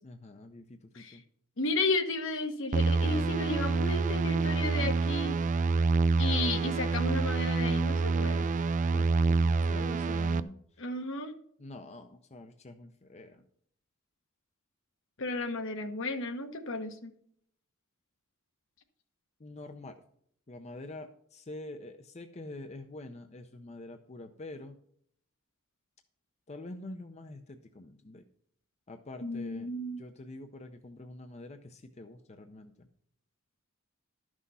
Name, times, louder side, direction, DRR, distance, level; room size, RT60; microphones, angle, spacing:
voice 1, 0.0-1.2 8.9-10.6 11.6-13.4 19.4-20.0 20.5-24.8 26.5-28.2 28.9-29.7 30.0-32.9, left 2 dB, 30° left, 7 dB, 0.6 m, -46 dB
voice 2, 1.6-5.4 6.2-8.5 10.8-11.4 15.2-17.1 29.2-30.0, left 2 dB, 65° left, 7 dB, 1.2 m, -33 dB
sound 1, 2.7-10.4, right 4 dB, 35° right, 0.4 m, -27 dB
12.0 x 6.2 x 5.5 m, 0.66 s
head